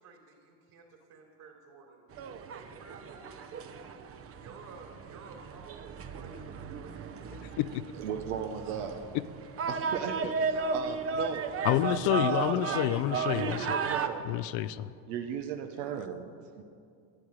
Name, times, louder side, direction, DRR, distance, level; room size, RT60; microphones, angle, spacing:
voice 1, 0.0-2.0 2.5-3.5 4.3-7.1 8.6-8.9 10.5-10.8, right 4 dB, 50° right, 1 dB, 3.5 m, -52 dB
sound 1, 2.1-14.1, right 5 dB, 30° right, 0.7 m, -35 dB
voice 2, 7.3-7.8 11.6-13.7 14.2-14.9, left 14 dB, 65° left, 14 dB, 0.6 m, -29 dB
voice 3, 8.0-9.2 9.7-11.7 12.0-12.4 12.7-12.9 13.3-14.3 15.1-16.3 16.6-16.7, right 7 dB, 85° right, 5 dB, 1.1 m, -37 dB
13.0 x 8.0 x 8.7 m, 2.4 s
supercardioid pair, 120°, 45 cm